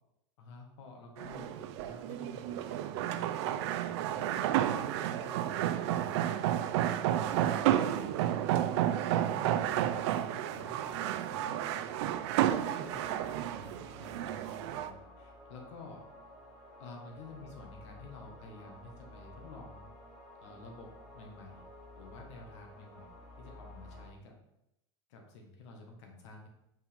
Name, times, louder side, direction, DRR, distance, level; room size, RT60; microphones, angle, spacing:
voice 1, 0.4-8.6 9.1-12.1 12.8-16.1 16.8-19.9 20.4-21.6 22.0-23.1 23.4-24.4 25.1-26.5, left 3 dB, 75° left, 2 dB, 1.5 m, -51 dB
sound 1, 1.2-14.9, right 12 dB, 65° right, 0.4 m, -31 dB
sound 2, 4.7-24.1, equal, ahead, 2.1 m, -53 dB
5.4 x 4.7 x 3.7 m, 0.85 s
supercardioid pair, 140°, 15 cm